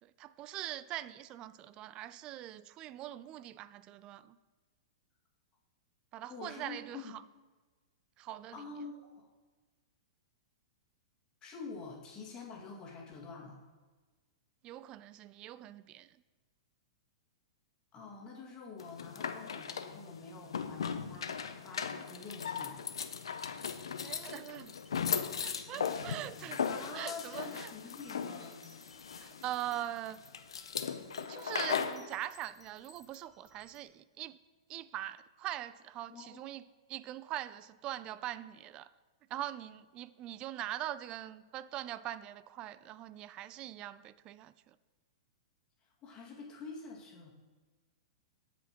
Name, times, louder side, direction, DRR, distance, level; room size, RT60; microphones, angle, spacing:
voice 1, 0.0-4.4 6.1-7.2 8.2-8.6 14.6-16.2 24.0-24.7 25.4-26.6 26.9-27.7 29.2-30.2 31.2-34.4 34.7-38.9 39.3-44.8, right 13 dB, 35° right, 0.3 m, -42 dB
voice 2, 6.3-7.1 8.5-9.3 11.4-13.6 17.9-22.8 25.8-28.7 36.1-36.4 45.8-47.3, left 4 dB, 30° left, 2.0 m, -47 dB
sound 1, 18.8-32.0, left 6 dB, 85° left, 0.5 m, -38 dB
sound 2, 24.3-33.8, equal, 5° right, 1.0 m, -62 dB
15.0 x 5.1 x 2.9 m
hypercardioid pair, 120°, 3 cm